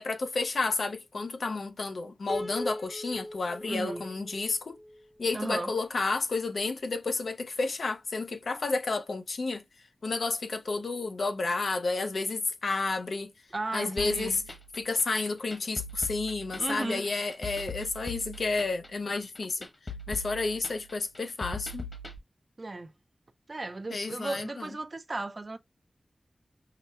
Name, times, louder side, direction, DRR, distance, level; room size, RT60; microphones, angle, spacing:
voice 1, 0.0-4.8 5.2-9.6 10.0-13.3 13.7-14.4 14.8-19.7 20.1-21.9 23.9-24.7, left 3 dB, 85° left, 0.5 m, -31 dB
Piano, 2.3-5.5, equal, 20° left, 0.5 m, -40 dB
voice 2, 3.7-4.1 5.3-5.7 13.5-14.4 16.6-17.1 22.6-22.9 23.5-25.6, right 2 dB, 50° right, 0.4 m, -35 dB
sound 1, 14.0-22.2, left 2 dB, 45° left, 1.1 m, -41 dB
5.6 x 2.1 x 2.3 m
cardioid pair, 45°, 0 cm